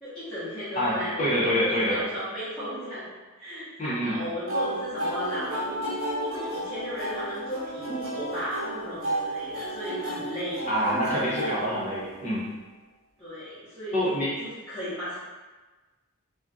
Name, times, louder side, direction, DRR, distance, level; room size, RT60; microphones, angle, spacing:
voice 1, 0.0-1.2 1.9-3.1 3.3-10.9 11.2-11.6 13.2-15.2, equal, ahead, -18 dB, 0.9 m, -36 dB
voice 2, 0.8-2.0 3.8-4.2 10.7-12.5 13.9-14.4, equal, 35° left, -7 dB, 0.8 m, -26 dB
sound 1, 4.5-12.4, right 1 dB, 60° right, 0.9 m, -33 dB
2.4 x 2.2 x 3.9 m, 1.3 s
head